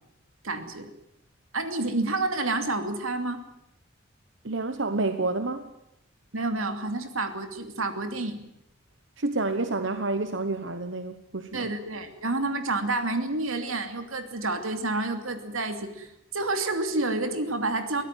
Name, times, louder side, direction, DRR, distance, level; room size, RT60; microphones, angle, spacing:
voice 1, 0.4-0.9 1.5-3.4 6.3-8.4 11.5-18.0, right 2 dB, 85° right, 7 dB, 2.8 m, -29 dB
voice 2, 4.4-5.7 9.2-11.7, right 3 dB, 60° right, 9 dB, 1.2 m, -29 dB
23.0 x 16.5 x 9.2 m, 0.81 s
head